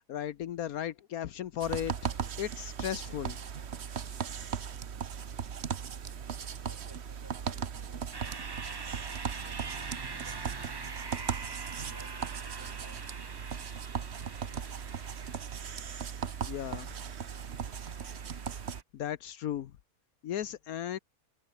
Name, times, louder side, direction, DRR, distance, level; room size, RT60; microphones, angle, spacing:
voice 1, 0.1-1.9 2.4-3.4 16.4-16.9 18.9-19.7 20.2-21.0, left 10 dB, 75° left, 1.3 m, -35 dB
sound 1, 1.6-18.8, right 7 dB, 50° right, 1.2 m, -38 dB
voice 2, 6.6-8.9 9.4-10.8 11.8-13.0, equal, 10° right, 2.8 m, -58 dB
sound 2, 8.1-18.8, right 4 dB, 30° right, 0.4 m, -44 dB
omnidirectional pair, 1.6 m